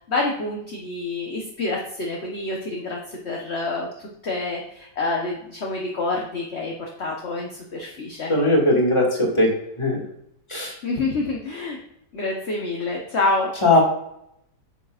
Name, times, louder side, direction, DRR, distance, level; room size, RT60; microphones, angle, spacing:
voice 1, 0.1-8.3 10.8-11.8 12.1-13.5, left 2 dB, 45° left, -1 dB, 1.3 m, -27 dB
voice 2, 8.3-10.0 10.5-10.7 13.6-13.8, left 1 dB, 15° left, -2 dB, 2.1 m, -19 dB
9.2 x 7.1 x 2.5 m, 0.76 s
omnidirectional pair, 1.9 m